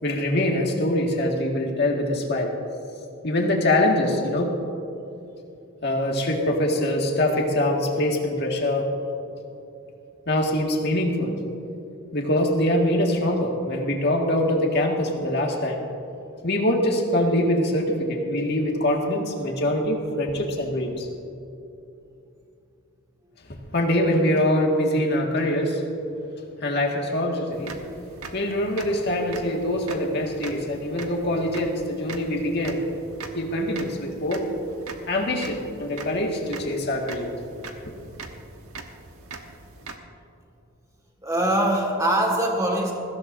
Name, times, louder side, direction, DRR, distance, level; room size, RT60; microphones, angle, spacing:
voice 1, 0.0-2.5 3.2-4.5 5.8-8.9 10.3-11.4 12.1-15.8 16.4-21.1 23.5-25.8 26.6-27.8 28.3-32.8 33.3-34.4 35.1-37.3, left 1 dB, 50° left, 0 dB, 1.9 m, -24 dB
sound 1, 27.5-40.0, right 4 dB, 85° right, 1.2 m, -42 dB
voice 2, 41.2-42.9, right 1 dB, 15° right, 0 dB, 1.8 m, -22 dB
21.0 x 16.0 x 2.7 m, 2.8 s
head